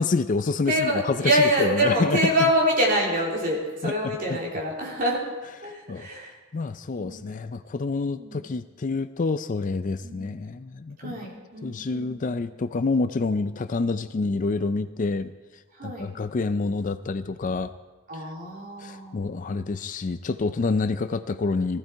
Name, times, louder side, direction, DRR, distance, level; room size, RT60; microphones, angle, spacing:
voice 1, 0.0-2.3 3.8-4.4 5.9-6.1 6.5-11.2 11.6-15.3 15.8-17.7 18.1-18.3 18.8-21.8, left 3 dB, 35° left, 12 dB, 0.4 m, -27 dB
voice 2, 0.7-5.2 5.6-6.3 7.0-7.3 8.1-8.4 10.0-10.3 11.0-12.5 15.8-16.1 18.1-19.2, equal, 40° right, -2 dB, 3.3 m, -26 dB
15.5 x 15.0 x 4.6 m, 1.3 s
head